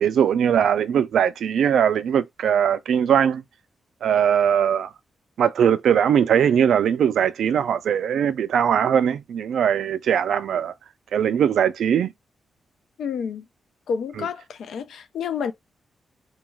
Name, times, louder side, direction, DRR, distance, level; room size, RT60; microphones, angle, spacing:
voice 1, 0.0-3.4 4.0-4.9 5.4-10.7 11.1-12.1 14.2-14.3, right 8 dB, 80° right, 0.3 m, -20 dB
voice 2, 13.0-13.4 13.9-15.5, left 7 dB, 90° left, 0.4 m, -29 dB
2.2 x 2.2 x 3.1 m
wide cardioid pair, 170°, 0 cm